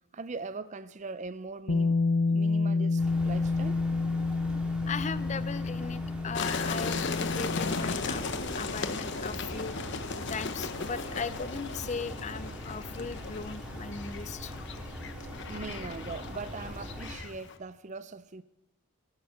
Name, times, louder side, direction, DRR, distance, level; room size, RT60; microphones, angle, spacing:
voice 1, 0.1-2.0 2.3-3.8 15.5-18.4, right 3 dB, 35° right, 0.5 m, -40 dB
Bass guitar, 1.7-7.9, left 3 dB, 90° left, 0.8 m, -29 dB
sound 1, 3.0-17.2, equal, 5° right, 2.4 m, -42 dB
voice 2, 4.8-8.3 8.5-9.8 10.3-14.5, left 5 dB, 30° left, 0.5 m, -38 dB
sound 2, 6.3-17.6, left 4 dB, 55° left, 1.0 m, -36 dB
16.0 x 9.8 x 8.5 m
head